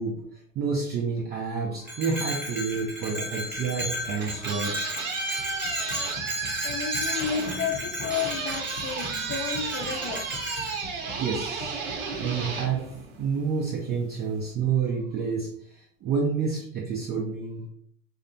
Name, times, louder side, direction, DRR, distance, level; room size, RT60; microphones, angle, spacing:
voice 1, 0.0-4.8 11.2-11.8 12.2-17.7, right 5 dB, 25° right, -1 dB, 0.4 m, -29 dB
Bell, 1.8-10.8, left 1 dB, 5° right, 1.0 m, -34 dB
sound 1, 2.7-13.6, left 1 dB, 75° left, 0.7 m, -45 dB
sound 2, 3.9-13.6, right 5 dB, 60° right, 0.7 m, -33 dB
voice 2, 6.6-10.3, left 7 dB, 30° left, 4 dB, 0.6 m, -32 dB
2.8 x 2.1 x 2.5 m, 0.63 s
hypercardioid pair, 100°, 40 cm